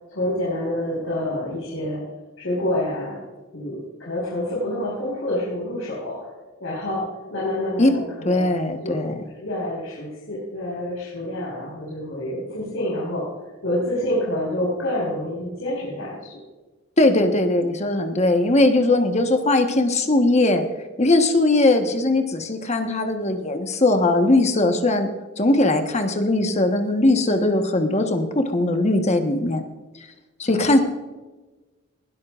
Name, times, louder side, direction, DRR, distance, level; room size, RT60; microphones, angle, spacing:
voice 1, 0.1-2.0 2.4-3.2 3.5-6.3 6.6-7.1 7.3-8.5 8.8-9.0 9.4-13.3 13.6-16.4 30.4-30.8, left 1 dB, 80° left, -6 dB, 5.2 m, -27 dB
voice 2, 8.2-9.2 17.0-20.7 21.0-25.1 25.4-29.6 30.4-30.8, left 2 dB, 35° left, 6 dB, 1.3 m, -19 dB
20.0 x 13.0 x 2.5 m, 1.2 s
head